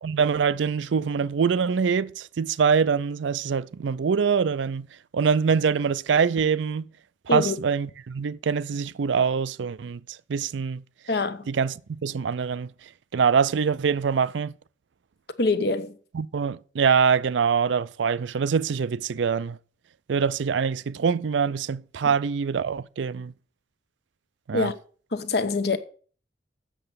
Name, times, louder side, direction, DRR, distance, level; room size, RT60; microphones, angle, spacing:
voice 1, 0.0-4.9 5.1-6.9 7.3-10.0 10.3-10.8 11.5-12.7 13.1-14.5 16.1-19.6 20.1-23.3 24.5-24.7, right 6 dB, 85° right, 0.4 m, -24 dB
voice 2, 11.1-11.5 15.4-15.9 24.5-24.7 25.1-25.8, left 2 dB, 60° left, 0.9 m, -24 dB
7.7 x 6.7 x 6.8 m
head